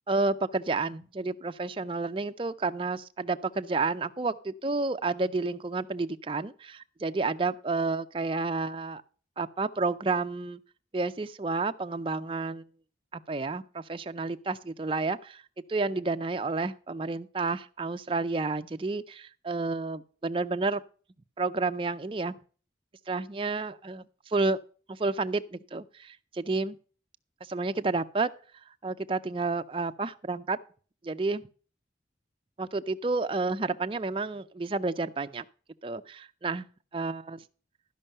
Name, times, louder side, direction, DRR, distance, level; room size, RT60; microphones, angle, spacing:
voice 1, 0.1-9.0 9.4-10.6 10.9-12.7 13.1-15.4 15.7-20.8 21.4-22.3 23.1-24.6 24.9-26.8 27.5-28.3 28.8-30.6 31.0-31.5 32.6-35.4 35.8-36.7 36.9-37.4, right 3 dB, 30° right, 0.4 m, -30 dB
12.5 x 5.4 x 6.5 m
head